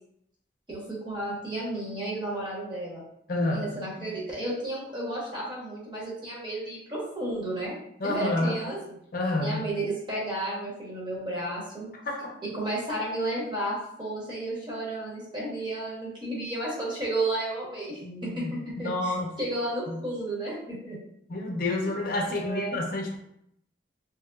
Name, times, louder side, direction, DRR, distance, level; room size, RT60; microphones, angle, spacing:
voice 1, 0.7-3.0 3.4-7.7 8.0-8.8 9.4-11.9 12.5-18.0 18.3-21.0 21.8-21.9 22.3-22.8, right 1 dB, 30° right, -5 dB, 0.9 m, -32 dB
voice 2, 3.3-3.7 8.0-8.6 9.1-9.6 12.1-12.3 18.0-19.3 19.9-20.0 21.3-23.2, left 2 dB, 55° left, 0 dB, 0.5 m, -29 dB
2.9 x 2.8 x 2.3 m, 0.74 s
head